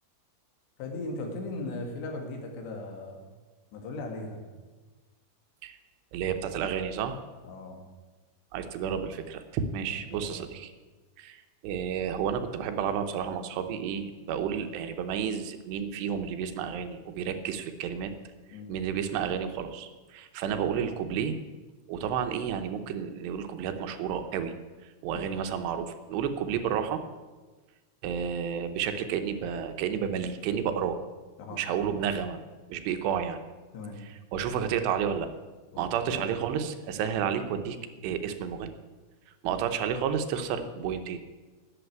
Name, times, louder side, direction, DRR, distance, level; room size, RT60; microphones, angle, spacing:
voice 1, 0.8-3.2 3.7-4.4 7.4-7.8 10.0-10.4 18.5-18.7 25.1-25.4 31.4-31.6 33.7-34.0 35.7-36.3, left 2 dB, 85° left, 3 dB, 4.1 m, -38 dB
voice 2, 6.1-7.2 8.5-10.7 11.2-18.1 18.5-21.4 21.9-24.5 25.0-27.0 28.0-31.0 31.5-32.4 32.7-33.4 34.0-35.3 35.8-37.8 38.0-38.8 39.4-41.2, right 8 dB, 80° right, 8 dB, 3.0 m, -31 dB
11.5 x 7.7 x 9.2 m, 1.3 s
omnidirectional pair, 4.9 m